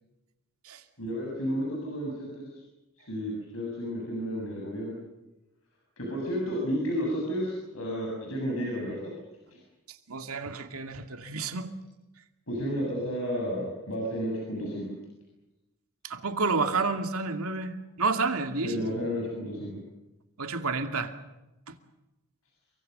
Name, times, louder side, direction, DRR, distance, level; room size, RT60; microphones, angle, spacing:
voice 1, 1.0-2.6 3.0-5.0 6.0-9.1 9.5-9.6 12.5-14.9 18.6-19.8, equal, 65° left, -1 dB, 7.5 m, -32 dB
voice 2, 10.1-11.7 16.0-18.7 20.4-21.1, right 4 dB, 80° right, 6 dB, 2.4 m, -30 dB
30.0 x 23.5 x 6.7 m, 0.98 s
head